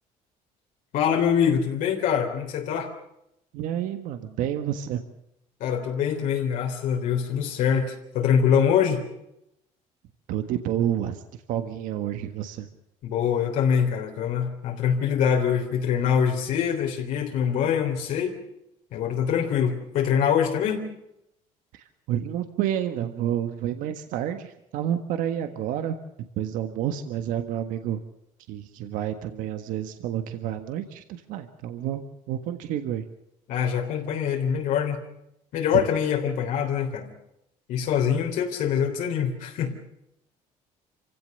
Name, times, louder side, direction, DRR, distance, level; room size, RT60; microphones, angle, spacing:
voice 1, 0.9-2.9 5.6-9.0 13.0-18.4 18.9-20.8 33.5-35.0 35.5-37.1 37.7-39.7, left 8 dB, 75° left, 1 dB, 3.6 m, -24 dB
voice 2, 3.5-5.0 10.3-11.2 11.5-12.7 21.7-26.0 26.4-28.0 28.5-33.0 35.7-35.8, right 10 dB, 80° right, 8 dB, 1.6 m, -29 dB
27.0 x 16.5 x 6.7 m, 0.82 s
cardioid pair, 135°, 14 cm